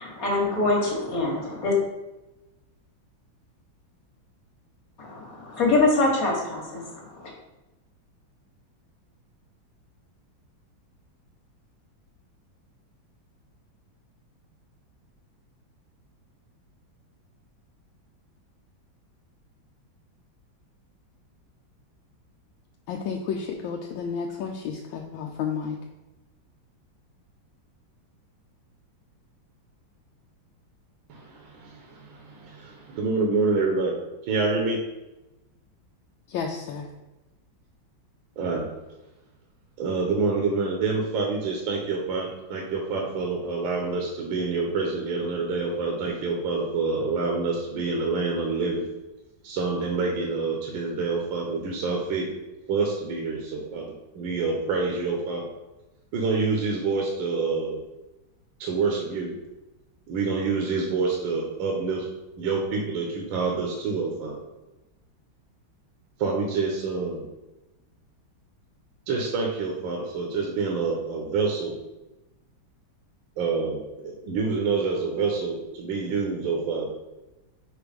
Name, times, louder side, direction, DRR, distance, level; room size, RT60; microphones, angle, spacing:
voice 1, 0.0-1.7 5.0-7.3, left 2 dB, 50° left, -2 dB, 1.6 m, -24 dB
voice 2, 22.9-25.8 36.3-36.9, left 6 dB, 80° left, 1 dB, 1.4 m, -31 dB
voice 3, 31.1-34.0 34.3-34.8 38.4-38.7 39.8-48.8 49.4-52.4 52.7-55.5 56.1-57.8 58.6-59.4 60.1-62.1 62.4-64.4 66.2-67.3 69.1-71.8 73.4-76.9, right 4 dB, 80° right, 0 dB, 1.6 m, -27 dB
5.0 x 4.6 x 5.1 m, 1.0 s
omnidirectional pair, 2.2 m